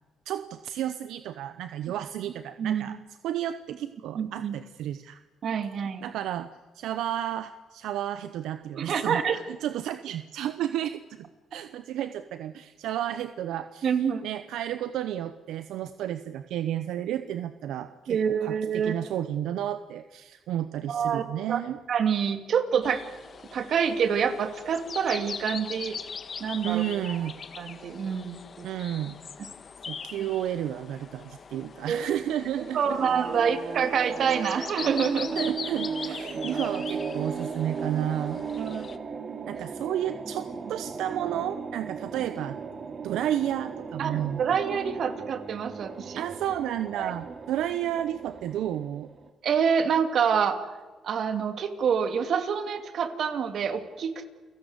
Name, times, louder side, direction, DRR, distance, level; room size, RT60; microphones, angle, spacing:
voice 1, 0.3-3.0 3.2-5.2 6.0-6.5 6.7-11.2 11.5-13.9 14.2-21.8 26.6-27.3 28.6-29.2 29.9-33.0 35.4-38.4 39.5-42.6 43.0-44.4 46.2-49.1, right 11 dB, 85° right, 11 dB, 0.9 m, -32 dB
voice 2, 2.6-3.0 4.1-4.5 5.4-6.1 8.7-9.4 13.8-14.2 18.1-18.9 20.9-21.6 21.9-23.0 23.5-26.0 26.4-27.2 27.6-28.7 30.2-30.3 31.9-32.0 32.7-35.4 36.5-36.6 38.6-38.9 44.0-46.2 47.0-47.1 49.4-50.6 51.0-54.3, right 7 dB, 60° right, 8 dB, 2.6 m, -27 dB
sound 1, 22.8-39.0, left 6 dB, 45° left, 1.5 m, -41 dB
sound 2, 32.7-49.3, right 5 dB, 45° right, 2.7 m, -36 dB
29.0 x 17.5 x 8.2 m, 1.3 s
cardioid pair, 90°, 0 cm